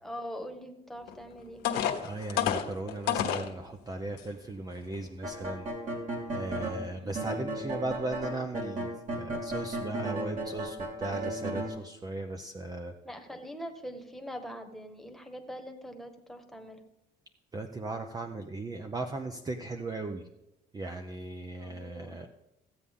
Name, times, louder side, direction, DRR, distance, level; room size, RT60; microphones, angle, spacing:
voice 1, 0.0-1.6 6.9-7.3 13.0-16.8 21.5-22.2, equal, ahead, 4 dB, 1.5 m, -43 dB
sound 1, 1.1-1.2 1.6-3.5 4.2-4.3 4.8-5.0, left 9 dB, 85° left, 1.2 m, -29 dB
voice 2, 2.0-5.7 6.3-12.9 17.5-20.3 20.7-22.3, right 2 dB, 20° right, 5 dB, 0.8 m, -37 dB
sound 2, 5.2-6.8 7.2-11.7, right 1 dB, 50° right, 3.1 m, -35 dB
15.5 x 8.3 x 3.7 m, 0.93 s
cardioid pair, 110°, 17 cm